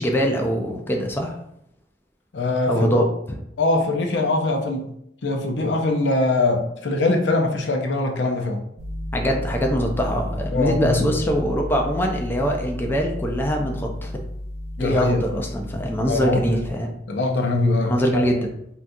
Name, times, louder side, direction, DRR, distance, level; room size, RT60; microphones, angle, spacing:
voice 1, 0.0-1.4 2.7-3.1 9.1-14.1 14.8-16.9 17.9-18.5, equal, 10° left, 1 dB, 0.3 m, -23 dB
voice 2, 2.3-2.9 3.6-4.9 5.2-8.6 10.5-11.1 14.8-15.2 16.1-16.6 17.1-18.5, left 2 dB, 85° left, 3 dB, 0.5 m, -22 dB
sound 1, 8.8-16.7, left 1 dB, 75° right, 0.5 m, -32 dB
3.7 x 2.3 x 2.6 m, 0.76 s
head